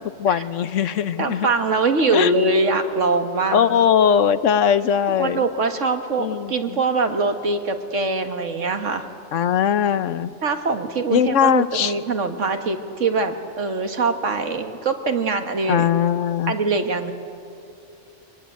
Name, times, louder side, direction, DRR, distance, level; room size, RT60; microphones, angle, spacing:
voice 1, 0.2-1.5 2.1-2.3 3.5-5.4 6.2-6.8 9.3-10.3 11.1-11.9 15.7-16.5, left 8 dB, 90° left, 13 dB, 1.2 m, -20 dB
voice 2, 1.2-3.7 5.2-9.1 10.4-15.9 16.5-17.1, right 3 dB, 80° right, 6 dB, 1.9 m, -23 dB
23.5 x 21.0 x 9.2 m, 2.6 s
omnidirectional pair, 1.3 m